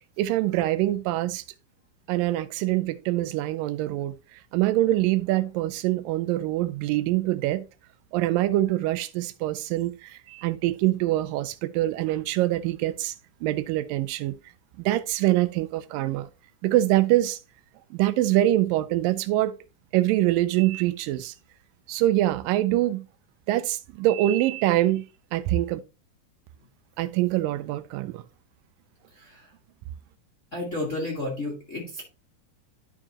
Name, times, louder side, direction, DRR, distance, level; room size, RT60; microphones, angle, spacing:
voice 1, 0.2-1.4 2.1-7.6 8.1-13.1 13.4-14.4 14.8-16.3 16.6-17.4 17.9-19.5 19.9-21.3 21.9-23.0 23.5-25.0 25.3-25.8 27.0-28.2, right 15 dB, 85° right, 2.3 m, -24 dB
voice 2, 29.1-29.5 30.5-32.0, left 2 dB, 30° left, 1.4 m, -32 dB
12.0 x 4.6 x 2.9 m
omnidirectional pair, 3.9 m